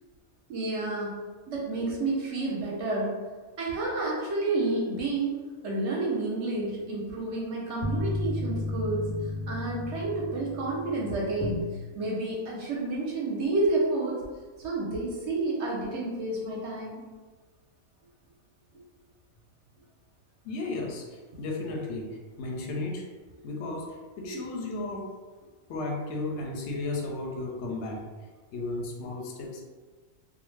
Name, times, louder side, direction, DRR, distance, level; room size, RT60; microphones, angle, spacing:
voice 1, 0.5-1.2 1.5-3.2 3.6-9.1 9.5-11.6 12.0-14.2 14.6-17.0, right 2 dB, 65° right, -3 dB, 0.8 m, -30 dB
sound 1, 6.5-11.6, left 1 dB, 90° left, 1.0 m, -34 dB
voice 2, 20.4-23.1 23.4-25.1 25.7-28.1 28.5-29.6, left 2 dB, 65° left, 0 dB, 0.7 m, -34 dB
2.5 x 2.1 x 3.1 m, 1.4 s
omnidirectional pair, 1.4 m